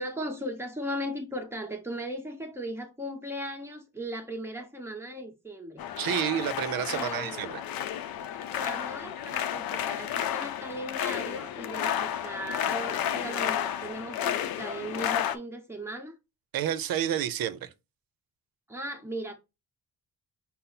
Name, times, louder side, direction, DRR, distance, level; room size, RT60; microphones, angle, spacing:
voice 1, 0.0-5.8 6.9-7.5 8.5-16.2 18.7-19.3, equal, 5° right, 0.9 m, -37 dB
sound 1, 5.8-15.4, left 10 dB, 85° left, 0.5 m, -32 dB
voice 2, 6.0-7.6 16.5-17.7, right 10 dB, 80° right, 0.6 m, -29 dB
5.5 x 2.0 x 4.0 m
cardioid pair, 125°, 35 cm